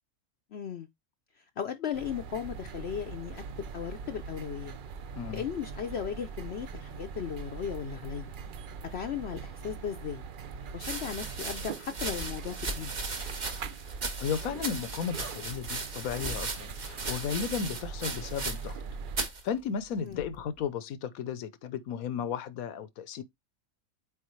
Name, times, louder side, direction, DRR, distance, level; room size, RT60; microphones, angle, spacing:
voice 1, 0.5-0.9 1.6-4.8 5.3-8.3 8.9-10.2 10.7-12.9 20.0-20.3, left 8 dB, 60° left, 0.8 m, -36 dB
sound 1, 1.9-19.2, right 5 dB, 55° right, 0.6 m, -42 dB
sound 2, 10.7-18.8 19.1-19.4 20.2-20.6, right 3 dB, 35° right, 1.0 m, -37 dB
voice 2, 14.2-18.8 19.2-23.2, left 7 dB, 80° left, 1.2 m, -34 dB
8.5 x 3.8 x 3.1 m
omnidirectional pair, 1.5 m